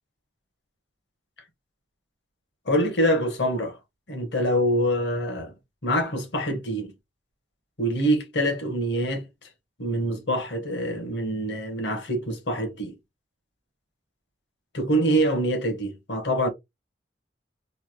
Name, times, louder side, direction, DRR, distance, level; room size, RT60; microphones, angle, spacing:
voice 1, 2.7-3.8 4.1-5.5 5.8-6.9 7.8-9.2 9.8-12.9 14.7-16.5, equal, 65° left, 1.1 m, -25 dB
3.3 x 2.3 x 2.9 m
head